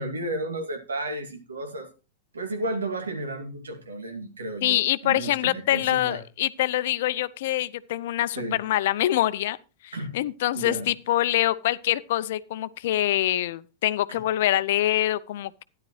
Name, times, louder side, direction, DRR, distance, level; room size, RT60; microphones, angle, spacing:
voice 1, 0.0-1.9 2.3-6.2 8.4-8.6 9.9-10.2 10.5-10.9 14.1-14.2, right 1 dB, 85° right, 2.4 m, -33 dB
voice 2, 4.6-9.6 9.8-15.6, left 14 dB, 60° left, 0.5 m, -25 dB
13.0 x 10.5 x 3.2 m
hypercardioid pair, 100°, 0 cm